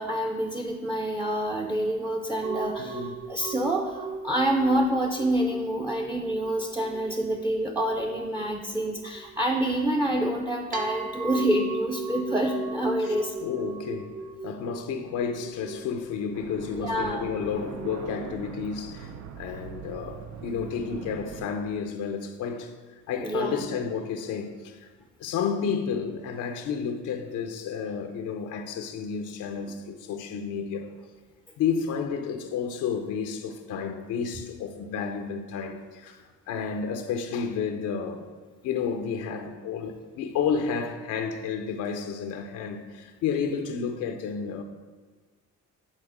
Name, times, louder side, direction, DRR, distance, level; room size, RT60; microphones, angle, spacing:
voice 1, 0.0-13.3 16.8-17.3 23.2-23.7, right 1 dB, 10° right, 0.6 m, -27 dB
sound 1, 2.4-18.3, right 4 dB, 25° right, 1.0 m, -39 dB
voice 2, 2.8-3.2 13.4-14.1 14.4-19.1 19.4-24.9 25.2-30.9 31.6-38.3 38.6-44.6, left 6 dB, 85° left, 0.7 m, -31 dB
sound 2, 16.3-21.5, right 6 dB, 65° right, 0.6 m, -42 dB
9.1 x 3.9 x 5.0 m
cardioid pair, 90°, 30 cm